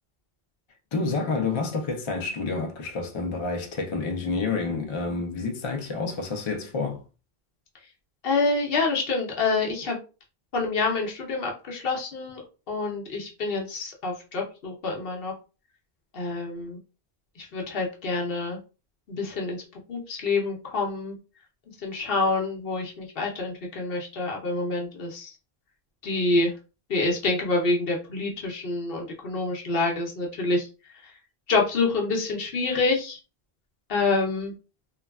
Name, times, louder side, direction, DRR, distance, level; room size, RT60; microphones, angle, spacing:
voice 1, 0.9-7.0, left 4 dB, 40° left, 0.4 m, -29 dB
voice 2, 8.2-10.0 10.5-12.4 12.7-15.3 16.1-16.8 17.4-18.6 19.1-19.6 19.9-21.2 21.8-25.4 26.0-26.5 26.9-30.7 31.0-31.1 31.5-33.2 33.9-34.5, left 3 dB, 65° left, 0.9 m, -27 dB
3.3 x 2.2 x 2.3 m
omnidirectional pair, 1.1 m